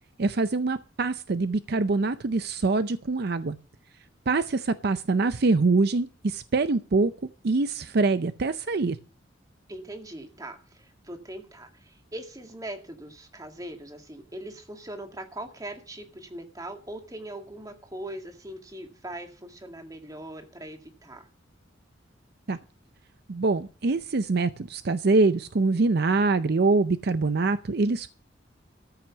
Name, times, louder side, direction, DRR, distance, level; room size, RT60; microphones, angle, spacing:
voice 1, 0.2-3.6 4.3-7.1 7.4-9.0 22.5-22.6 23.3-28.1, right 3 dB, 55° right, 12 dB, 0.6 m, -24 dB
voice 2, 9.7-21.3, right 1 dB, 20° right, 5 dB, 2.0 m, -41 dB
14.0 x 6.1 x 8.2 m, 0.37 s
head